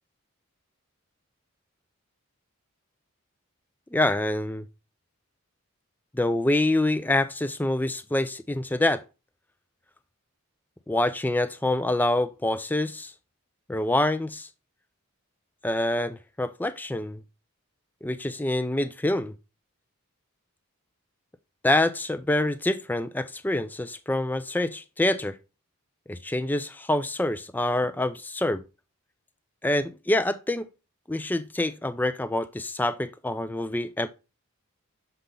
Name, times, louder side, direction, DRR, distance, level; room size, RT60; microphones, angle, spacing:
voice 1, 3.9-4.7 6.1-9.0 10.9-13.1 13.7-14.5 15.6-17.2 18.0-19.3 21.6-25.4 26.1-28.6 29.6-30.7 31.1-34.1, left 1 dB, 10° left, 0.3 m, -26 dB
6.7 x 4.1 x 3.8 m
head